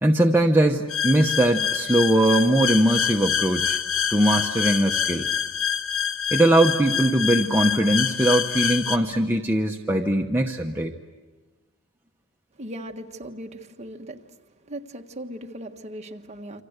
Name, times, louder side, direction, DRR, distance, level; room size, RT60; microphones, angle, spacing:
voice 1, 0.0-3.8 4.1-5.3 6.3-10.9, right 1 dB, 10° right, 1 dB, 0.9 m, -21 dB
sound 1, 0.9-9.0, left 8 dB, 70° left, 1.4 m, -26 dB
voice 2, 12.6-14.2 14.7-16.6, right 1 dB, 30° right, 3 dB, 1.5 m, -38 dB
28.0 x 26.0 x 8.1 m, 1.3 s
head